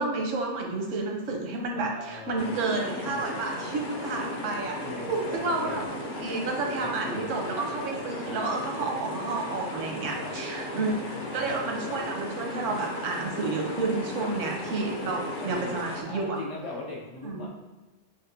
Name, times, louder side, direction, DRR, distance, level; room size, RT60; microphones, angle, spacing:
voice 1, 0.0-11.0 11.3-16.4 17.2-17.5, right 3 dB, 85° right, 1 dB, 1.1 m, -31 dB
voice 2, 1.7-3.2 4.8-5.8 6.7-7.3 10.1-10.3 11.3-12.1 14.2-14.3 15.4-17.6, left 2 dB, 85° left, -3 dB, 1.3 m, -40 dB
sound 1, 2.4-16.0, left 1 dB, 55° left, 0.6 m, -36 dB
6.3 x 2.3 x 2.6 m, 1.2 s
omnidirectional pair, 1.3 m